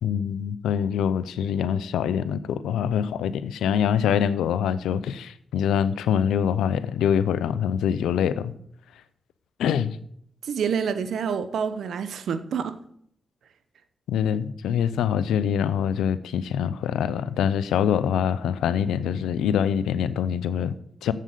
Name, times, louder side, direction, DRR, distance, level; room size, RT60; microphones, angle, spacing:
voice 1, 0.0-8.5 9.6-10.0 14.1-21.1, left 8 dB, 90° left, 0.5 m, -24 dB
voice 2, 10.4-12.8, right 7 dB, 80° right, 0.8 m, -27 dB
7.6 x 7.4 x 6.7 m
supercardioid pair, 45°, 0 cm